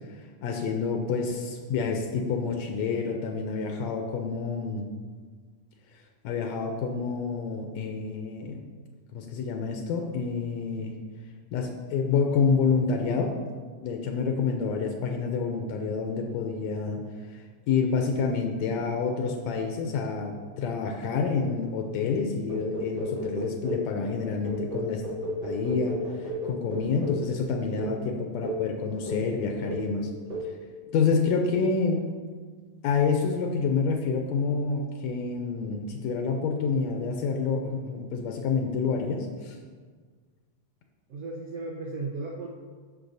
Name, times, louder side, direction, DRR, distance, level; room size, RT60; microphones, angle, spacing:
voice 1, 0.1-4.9 6.2-8.7 9.1-10.9 11.5-13.3 13.8-17.0 17.3-25.0 25.4-30.1 30.4-30.5 30.9-32.1 32.8-39.6, left 5 dB, 90° left, 3 dB, 1.5 m, -28 dB
sound 1, 22.5-23.9 24.4-27.3 27.8-28.0 28.4-28.7 29.1-29.4 29.6-29.9 30.3-30.6, equal, 55° right, 2.0 m, -33 dB
voice 2, 41.1-42.5, right 3 dB, 80° right, -3 dB, 1.3 m, -35 dB
11.5 x 6.4 x 2.6 m, 1.6 s
omnidirectional pair, 3.7 m